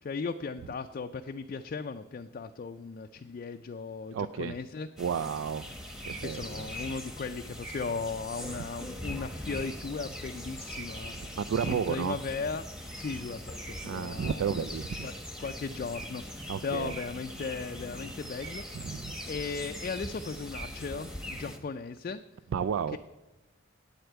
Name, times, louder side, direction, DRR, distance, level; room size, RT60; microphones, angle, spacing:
voice 1, 0.0-4.9 6.2-11.4 11.6-12.7 12.9-15.1 15.4-18.9 19.2-22.2 22.9-23.0, left 4 dB, 45° left, 7 dB, 0.3 m, -37 dB
voice 2, 4.1-4.6 5.0-5.7 6.1-6.7 11.3-12.2 13.8-15.1 16.5-16.9 18.8-19.1 22.5-23.0, right 7 dB, 80° right, 12 dB, 0.3 m, -32 dB
sound 1, 5.0-21.6, equal, 5° right, 1.0 m, -41 dB
8.8 x 7.9 x 8.0 m, 1.1 s
head